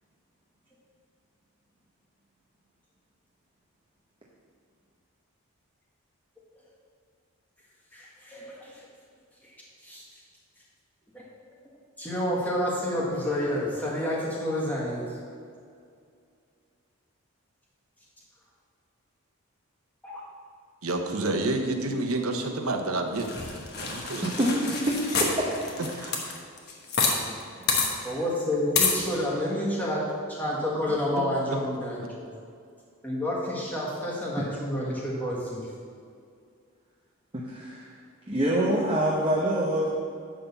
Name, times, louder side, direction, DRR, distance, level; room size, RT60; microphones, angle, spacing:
voice 1, 7.9-8.8 9.8-10.0 11.1-11.2 12.0-15.0 20.0-20.2 28.0-30.0 30.3-32.3 33.0-35.7, left 1 dB, 5° left, -5 dB, 1.7 m, -29 dB
voice 2, 20.8-23.3 23.8-24.4 25.9-26.4 31.2-31.3 31.5-31.6, right 2 dB, 75° right, 4 dB, 1.0 m, -29 dB
sound 1, 23.2-27.2 27.4-27.5 27.7-27.9 28.8-29.0, left 4 dB, 45° left, 1.2 m, -27 dB
voice 3, 24.2-25.5 27.8-28.1 34.4-34.5 37.3-37.9 38.3-40.0, right 1 dB, 25° right, -5 dB, 0.8 m, -26 dB
11.0 x 3.8 x 7.0 m, 2.3 s
head